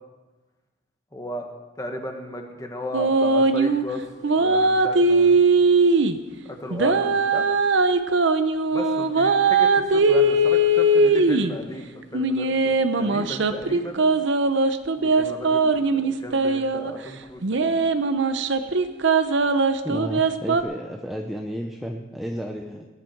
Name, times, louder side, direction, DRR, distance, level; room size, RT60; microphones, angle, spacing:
voice 1, 1.1-1.5 1.8-4.0 4.4-5.4 6.4-7.5 8.7-14.0 15.0-17.7, left 1 dB, 15° left, 3 dB, 1.5 m, -35 dB
sound 1, 2.9-3.8 4.2-6.2 6.7-11.6 12.1-16.9 17.4-20.6, right 2 dB, 60° right, 0.7 m, -20 dB
voice 2, 19.8-22.9, equal, ahead, 2 dB, 0.6 m, -32 dB
18.5 x 10.5 x 4.5 m, 1.2 s
head